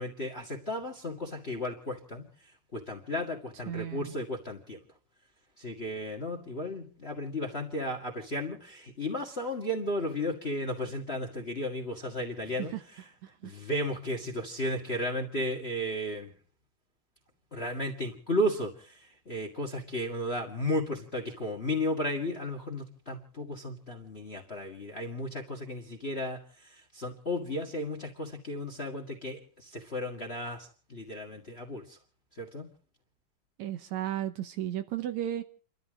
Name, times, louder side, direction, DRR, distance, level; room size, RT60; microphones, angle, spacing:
voice 1, 0.0-2.3 2.7-4.8 5.6-12.7 13.4-16.3 17.5-32.0 32.4-32.7, left 1 dB, 25° left, 4 dB, 1.5 m, -34 dB
voice 2, 3.7-4.1 12.4-12.8 13.2-13.5 33.6-35.4, right 12 dB, 70° right, 8 dB, 2.2 m, -34 dB
30.0 x 13.0 x 3.7 m, 0.43 s
omnidirectional pair, 3.6 m